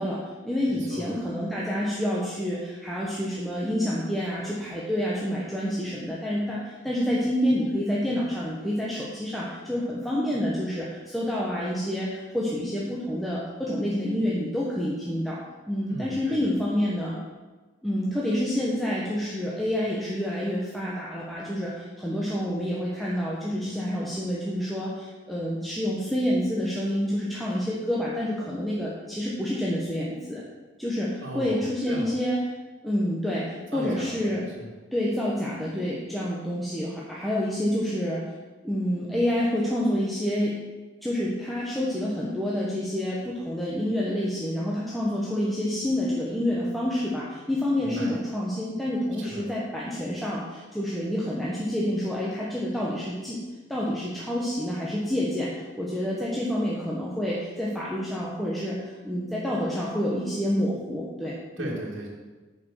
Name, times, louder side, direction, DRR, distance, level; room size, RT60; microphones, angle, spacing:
voice 1, 0.0-17.2 17.8-30.4 30.8-32.4 32.8-34.4 34.9-38.2 38.6-40.6 41.0-53.4 53.7-61.7, equal, ahead, -6 dB, 1.0 m, -28 dB
voice 2, 0.7-1.2 15.9-16.6 31.2-32.1 33.7-34.7 47.8-48.2 49.2-49.5 61.6-62.1, right 1 dB, 65° right, -4 dB, 2.0 m, -37 dB
9.4 x 5.3 x 6.3 m, 1.2 s
head